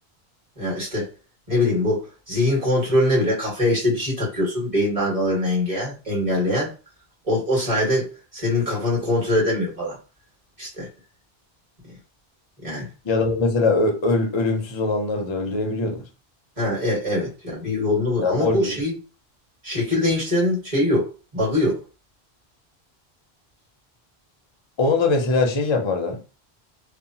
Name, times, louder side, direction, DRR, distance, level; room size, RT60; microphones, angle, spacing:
voice 1, 0.6-1.1 1.5-6.7 7.2-10.0 10.6-10.9 12.6-12.9 16.6-18.9 19.6-21.8, left 1 dB, 35° right, 1.5 m, -23 dB
voice 2, 13.0-16.0 18.2-18.7 24.8-26.3, left 3 dB, 35° left, 0.5 m, -22 dB
2.7 x 2.1 x 2.7 m
omnidirectional pair, 1.1 m